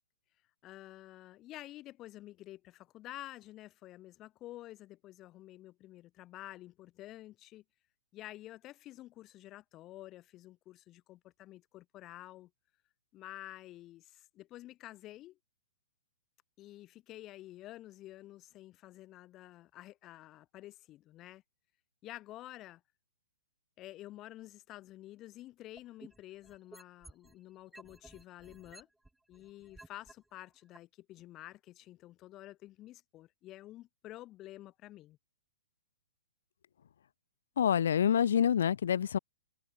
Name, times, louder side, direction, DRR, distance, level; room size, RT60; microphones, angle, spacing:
voice 1, 0.6-7.6 8.1-12.5 13.1-15.4 16.6-21.4 22.0-22.8 23.8-28.9 29.3-35.2, left 15 dB, 20° left, 5.0 m, -50 dB
sound 1, 25.8-27.3 27.7-30.1 30.7-30.8, right 2 dB, ahead, 4.8 m, -54 dB
voice 2, 37.6-39.2, left 8 dB, 65° left, 0.8 m, -27 dB
hypercardioid pair, 170°, 0 cm